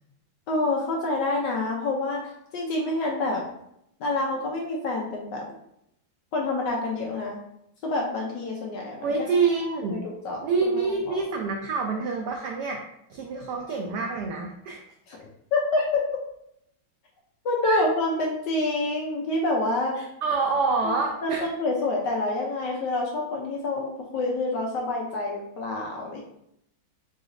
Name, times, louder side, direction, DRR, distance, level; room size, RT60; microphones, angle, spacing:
voice 1, 0.5-3.4 4.0-5.4 6.3-7.4 7.8-9.1 9.9-10.4 10.7-11.2 15.1-16.0 17.4-20.0 20.8-20.9 21.2-26.2, left 2 dB, 70° left, -1 dB, 1.0 m, -27 dB
voice 2, 9.0-10.0 10.4-12.8 13.1-14.8 17.6-17.8 19.9-21.5, right 4 dB, 90° right, 2 dB, 0.9 m, -27 dB
4.0 x 3.8 x 2.5 m, 0.79 s
omnidirectional pair, 2.3 m